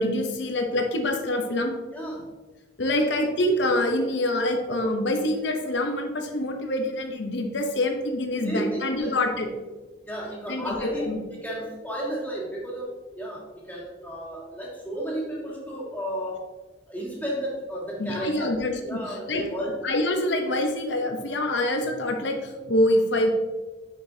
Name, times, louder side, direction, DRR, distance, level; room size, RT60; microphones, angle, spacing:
voice 1, 0.0-1.7 2.8-9.5 10.5-11.2 18.0-19.4 19.8-23.3, left 1 dB, 70° left, 4 dB, 0.8 m, -25 dB
voice 2, 1.9-2.3 8.4-9.2 10.0-16.5 16.9-18.5 18.8-19.8, equal, 10° left, -5 dB, 1.5 m, -33 dB
6.1 x 5.9 x 2.7 m, 1.3 s
head